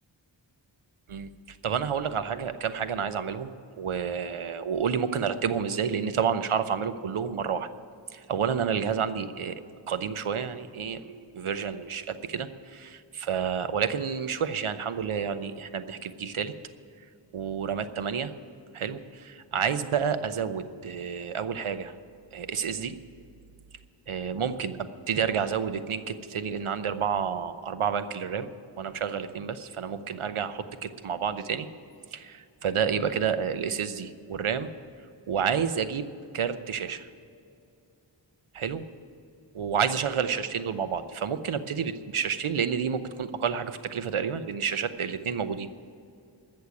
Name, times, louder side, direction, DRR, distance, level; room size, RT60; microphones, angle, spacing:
voice 1, 1.1-7.7 8.1-9.6 9.9-16.5 17.3-18.3 18.7-21.9 22.3-23.0 24.1-28.5 28.8-31.7 32.1-34.7 35.3-36.1 36.3-37.1 38.5-38.8 39.5-45.7, right 7 dB, 80° right, 11 dB, 0.8 m, -30 dB
15.0 x 6.6 x 9.6 m, 2.5 s
cardioid pair, 45°, 49 cm